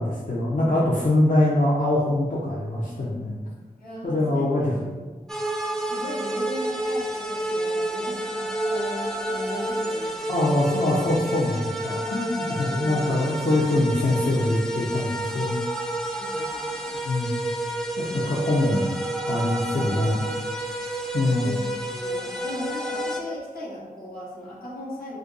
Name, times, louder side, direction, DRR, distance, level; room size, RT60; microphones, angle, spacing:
voice 1, 0.0-3.4 4.0-4.6 10.3-15.6 17.0-17.4 18.0-18.9 19.3-20.3 21.1-21.6, left 1 dB, 50° left, -7 dB, 0.6 m, -23 dB
voice 2, 3.8-5.0 5.6-10.6 12.6-13.3 16.2-16.9 18.0-18.5 21.3-25.2, left 1 dB, 70° left, -6 dB, 1.1 m, -37 dB
sound 1, 5.3-23.2, right 1 dB, 5° left, 0.4 m, -29 dB
2.8 x 2.5 x 3.9 m, 1.3 s
wide cardioid pair, 45°, 16 cm